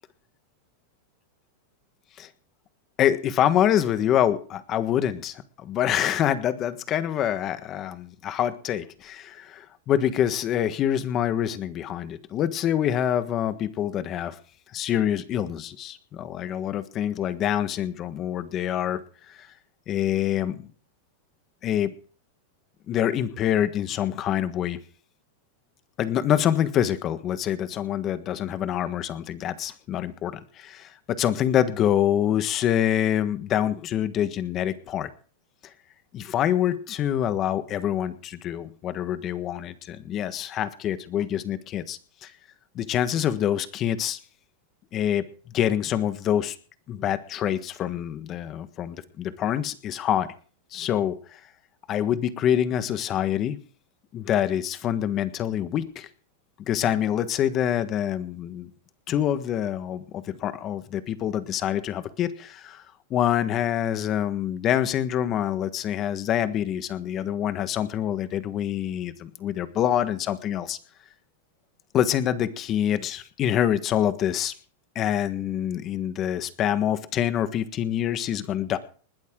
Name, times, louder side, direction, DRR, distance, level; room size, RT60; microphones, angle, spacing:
voice 1, 3.0-14.4 14.7-19.0 19.3-19.4 19.9-20.7 21.6-21.9 22.9-24.8 26.0-35.1 36.1-42.3 42.7-44.2 44.9-45.3 45.5-46.6 46.9-50.3 50.7-51.4 51.9-53.6 54.1-56.1 56.6-58.7 59.1-62.8 63.1-70.8 71.9-74.5 74.9-78.8, left 10 dB, 35° left, 11 dB, 1.5 m, -26 dB
20.5 x 11.5 x 3.8 m, 0.39 s
supercardioid pair, 130°, 0 cm